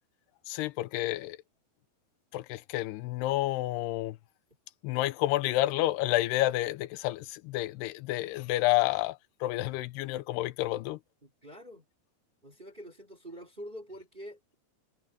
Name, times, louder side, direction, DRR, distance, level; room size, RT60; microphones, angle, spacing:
voice 1, 0.5-1.4 2.3-4.2 4.8-11.0, left 17 dB, 85° left, 2.7 m, -30 dB
voice 2, 11.2-11.8 12.4-14.5, equal, 15° right, 2.4 m, -46 dB
omnidirectional pair, 4.6 m